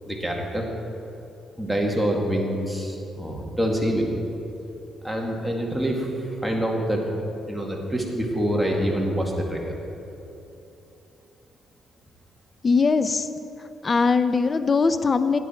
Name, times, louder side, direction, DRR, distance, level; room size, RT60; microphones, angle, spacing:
voice 1, 0.1-0.6 1.6-4.1 5.0-7.0 7.5-9.8, equal, ahead, -1 dB, 2.2 m, -26 dB
voice 2, 12.6-13.3 13.6-15.4, left 4 dB, 35° left, 11 dB, 0.7 m, -21 dB
18.0 x 10.0 x 4.5 m, 2.9 s
cardioid pair, 90°, 0 cm